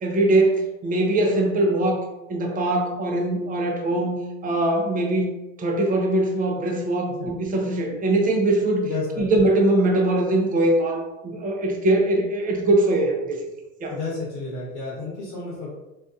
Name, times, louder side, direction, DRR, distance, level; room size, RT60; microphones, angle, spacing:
voice 1, 0.0-2.0 2.3-4.2 4.4-5.3 5.6-8.9 9.2-13.4 13.8-14.0, right 1 dB, 25° right, 2 dB, 0.5 m, -22 dB
voice 2, 8.8-9.3 13.9-15.7, left 3 dB, 60° left, -6 dB, 1.0 m, -31 dB
2.5 x 2.3 x 2.4 m, 0.98 s
hypercardioid pair, 85°, 34 cm